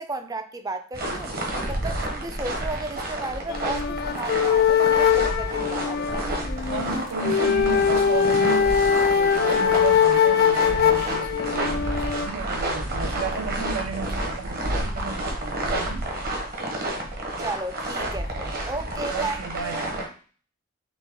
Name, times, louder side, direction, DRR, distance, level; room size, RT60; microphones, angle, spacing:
voice 1, 0.0-1.3 1.7-6.3 17.4-19.9, right 2 dB, 20° right, 0.4 m, -34 dB
sound 1, 0.9-20.0, right 1 dB, 45° right, 1.1 m, -30 dB
sound 2, 3.5-12.3, left 7 dB, 50° left, 0.4 m, -22 dB
voice 2, 6.7-8.8 9.1-16.1 18.4-18.5 19.1-19.9, right 5 dB, 85° right, 0.6 m, -33 dB
6.0 x 2.2 x 3.7 m
head